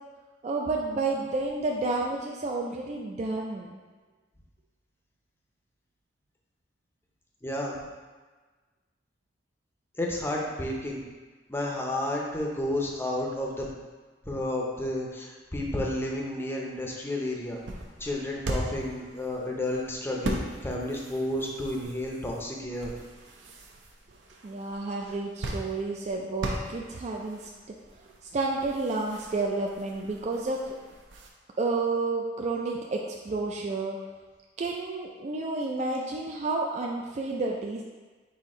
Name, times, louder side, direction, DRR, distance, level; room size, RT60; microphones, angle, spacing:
voice 1, 0.4-3.8 24.4-27.5 28.2-30.8 31.6-34.0 34.6-37.8, right 3 dB, 40° right, 0 dB, 0.3 m, -30 dB
voice 2, 7.4-7.8 10.0-11.0 11.5-13.7 14.3-17.6 18.0-22.9, left 1 dB, 15° left, -2 dB, 0.6 m, -31 dB
sound 1, 17.2-31.3, right 1 dB, 80° right, 0.6 m, -39 dB
4.2 x 2.7 x 4.8 m, 1.3 s
head